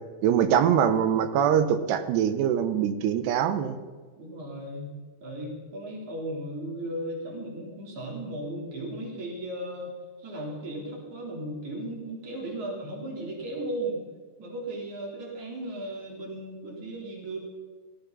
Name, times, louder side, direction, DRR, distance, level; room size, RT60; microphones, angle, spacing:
voice 1, 0.2-3.8, right 9 dB, 85° right, 10 dB, 3.1 m, -23 dB
voice 2, 4.2-4.9 5.2-9.9 10.2-14.0 14.4-17.4, right 1 dB, 45° right, -2 dB, 4.8 m, -36 dB
18.0 x 15.5 x 4.1 m, 1.4 s
omnidirectional pair, 4.7 m